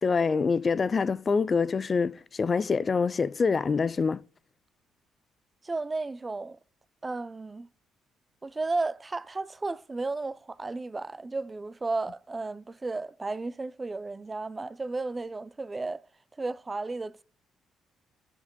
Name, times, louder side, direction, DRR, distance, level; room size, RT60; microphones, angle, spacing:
voice 1, 0.0-4.2, left 5 dB, 40° left, 0.3 m, -25 dB
voice 2, 5.6-6.6 7.0-7.7 8.4-16.0 16.4-17.2, right 3 dB, 25° right, 0.5 m, -33 dB
14.0 x 5.7 x 2.2 m
hypercardioid pair, 45°, 0 cm